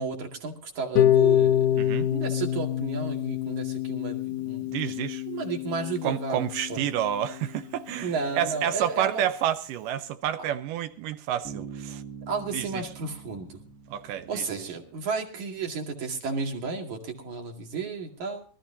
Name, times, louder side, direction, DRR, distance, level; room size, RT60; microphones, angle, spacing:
voice 1, 0.0-4.7 5.3-6.8 8.0-9.3 12.3-13.6 14.3-18.4, right 4 dB, 60° right, 3.5 m, -33 dB
Harp, 1.0-7.0, left 11 dB, 75° left, 2.3 m, -25 dB
voice 2, 1.8-2.1 4.7-5.2 6.0-12.0 12.5-12.8 13.9-14.5, right 11 dB, 80° right, 2.3 m, -29 dB
Bass guitar, 11.4-15.1, right 6 dB, 30° right, 1.9 m, -43 dB
24.5 x 14.0 x 2.7 m
omnidirectional pair, 3.9 m